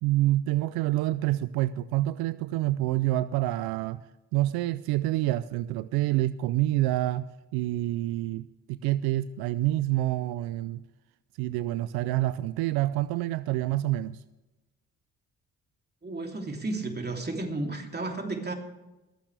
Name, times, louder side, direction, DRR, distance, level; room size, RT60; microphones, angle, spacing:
voice 1, 0.0-4.0 4.3-10.8 11.4-14.2, right 15 dB, 85° right, 16 dB, 0.5 m, -27 dB
voice 2, 16.0-18.5, right 2 dB, 25° right, 3 dB, 3.0 m, -33 dB
24.0 x 8.9 x 3.4 m, 1.0 s
supercardioid pair, 60°, 36 cm